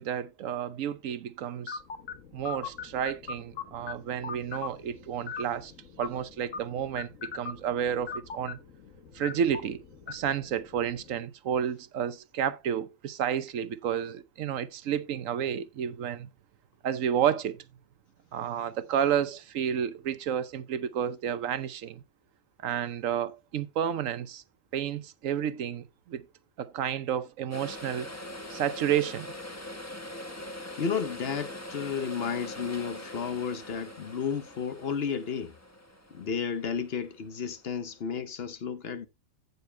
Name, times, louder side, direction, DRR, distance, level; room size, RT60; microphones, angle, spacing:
voice 1, 0.0-1.8 2.3-5.7 6.0-8.6 9.1-16.3 16.8-17.6 18.3-22.0 22.6-24.4 24.7-26.3 26.6-28.1 28.5-29.3, right 9 dB, 80° right, 1.1 m, -31 dB
sound 1, 1.7-11.2, left 6 dB, 90° left, 1.6 m, -42 dB
sound 2, 27.5-37.8 38.1-38.2, left 1 dB, 15° left, 1.2 m, -43 dB
voice 2, 30.8-35.5 36.1-39.1, left 6 dB, 55° left, 0.9 m, -32 dB
16.0 x 6.8 x 2.2 m
omnidirectional pair, 1.3 m